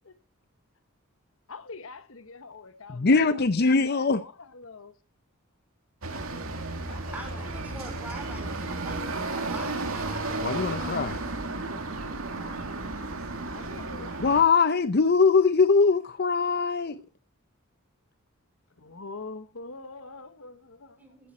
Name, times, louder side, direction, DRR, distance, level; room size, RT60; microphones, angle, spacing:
voice 1, 1.5-4.9 6.8-7.5 7.9-8.2 13.5-14.2 18.8-21.1, left 3 dB, 70° left, 1.1 m, -44 dB
voice 2, 2.9-4.2 10.4-11.2 14.2-17.0, left 4 dB, 50° left, 0.6 m, -22 dB
sound 1, 6.0-14.4, right 2 dB, 75° right, 2.5 m, -33 dB
voice 3, 6.7-11.1 21.0-21.3, right 1 dB, 5° right, 4.3 m, -44 dB
15.0 x 10.5 x 4.4 m
head